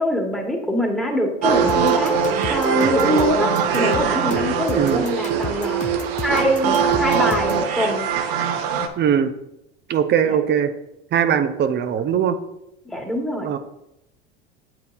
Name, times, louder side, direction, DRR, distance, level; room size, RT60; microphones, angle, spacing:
voice 1, 0.0-2.1 2.5-5.8 6.2-8.1 10.3-10.4 12.8-13.5, equal, ahead, 0 dB, 1.5 m, -23 dB
sound 1, 1.4-8.9, right 6 dB, 60° right, 0.9 m, -21 dB
sound 2, 1.7-7.7, left 6 dB, 25° left, 0.5 m, -34 dB
voice 2, 4.7-5.1 7.2-7.3 9.0-9.3 9.9-10.7 11.1-12.4 13.4-13.6, right 8 dB, 35° right, 11 dB, 0.6 m, -20 dB
8.0 x 7.2 x 2.6 m, 0.87 s
hypercardioid pair, 85°, 32 cm